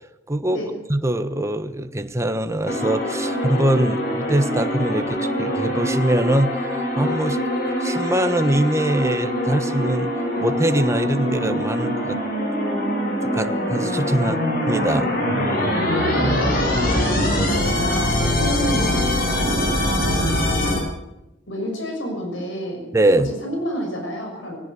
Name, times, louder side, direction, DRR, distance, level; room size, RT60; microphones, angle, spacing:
voice 1, 0.3-0.6 0.9-7.4 7.8-10.1 10.4-12.2 13.3-14.4 14.7-15.1 17.7-17.8 22.9-23.3, right 1 dB, 15° right, 9 dB, 1.2 m, -22 dB
sound 1, 2.7-20.8, left 1 dB, 50° left, 7.8 m, -23 dB
voice 2, 16.1-17.4 17.6-19.0 19.3-20.7 21.5-22.9 23.2-24.6, equal, 70° left, 3 dB, 6.7 m, -30 dB
18.5 x 18.0 x 8.4 m, 0.94 s
head